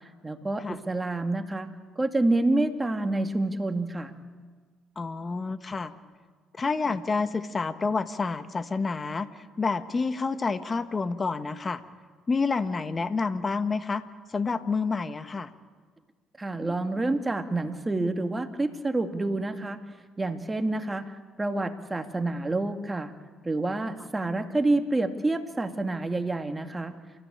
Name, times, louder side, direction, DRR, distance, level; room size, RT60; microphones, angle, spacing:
voice 1, 0.2-1.7 2.0-4.1 16.4-19.8 20.2-21.1 21.4-23.1 23.4-27.0, right 2 dB, 20° right, 7 dB, 2.3 m, -28 dB
voice 2, 4.9-5.9 6.5-11.8 12.3-14.0 14.3-15.5, left 4 dB, 35° left, 11 dB, 1.4 m, -29 dB
29.0 x 15.0 x 8.9 m, 1.5 s
supercardioid pair, 60°, 0 cm